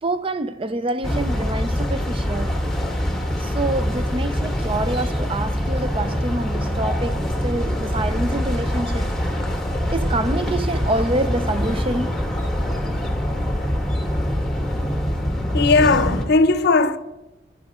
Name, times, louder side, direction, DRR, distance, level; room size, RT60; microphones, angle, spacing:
voice 1, 0.0-2.6 3.4-9.1 9.9-12.2, right 2 dB, 30° right, 0.5 m, -26 dB
sound 1, 1.0-16.3, equal, ahead, 1.5 m, -24 dB
sound 2, 5.3-15.2, equal, 45° right, 1.9 m, -36 dB
voice 2, 15.4-17.0, left 3 dB, 60° left, 0.7 m, -17 dB
18.5 x 10.5 x 3.7 m
head